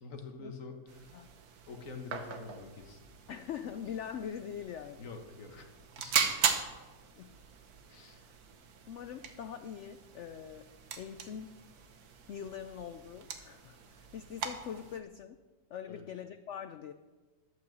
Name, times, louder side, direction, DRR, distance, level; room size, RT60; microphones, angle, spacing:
voice 1, 0.0-1.2 1.7-3.0 5.0-5.7 6.0-6.4 7.9-8.2 15.9-16.0, left 4 dB, 55° left, 5 dB, 1.6 m, -46 dB
sound 1, 0.9-15.0, right 6 dB, 65° right, 1.4 m, -39 dB
voice 2, 3.3-5.1 7.1-7.3 7.9-8.2 8.9-10.7 11.0-11.6 12.3-15.4 15.7-16.9, left 8 dB, 80° left, 10 dB, 0.6 m, -43 dB
11.5 x 6.3 x 7.5 m, 1.3 s
omnidirectional pair, 1.8 m